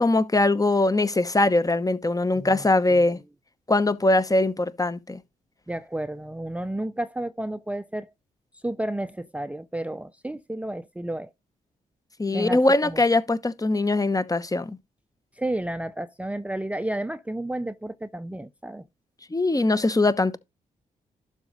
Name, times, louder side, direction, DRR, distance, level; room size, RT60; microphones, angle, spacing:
voice 1, 0.0-3.2 3.7-5.2 12.2-14.8 19.3-20.4, left 2 dB, 20° left, 0.9 m, -22 dB
voice 2, 5.7-8.1 8.6-11.3 12.3-13.0 15.4-18.8, right 1 dB, 10° right, 0.6 m, -31 dB
12.0 x 4.1 x 5.0 m
hypercardioid pair, 40°, 17 cm